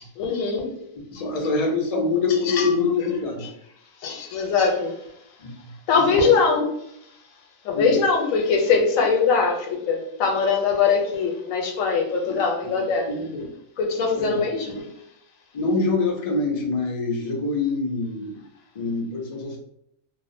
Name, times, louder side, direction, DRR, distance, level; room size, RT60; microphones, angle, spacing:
voice 1, 0.2-0.7 2.4-2.7 4.0-5.0 5.9-6.6 7.6-13.1 13.8-14.8, left 5 dB, 90° left, 2 dB, 1.0 m, -22 dB
voice 2, 1.0-3.5 5.4-6.3 7.7-8.0 12.3-12.4 13.1-13.5 14.2-14.4 14.7-14.8 15.5-18.3 18.7-19.6, left 3 dB, 55° left, 0 dB, 0.4 m, -25 dB
2.4 x 2.0 x 2.5 m, 0.75 s
omnidirectional pair, 1.4 m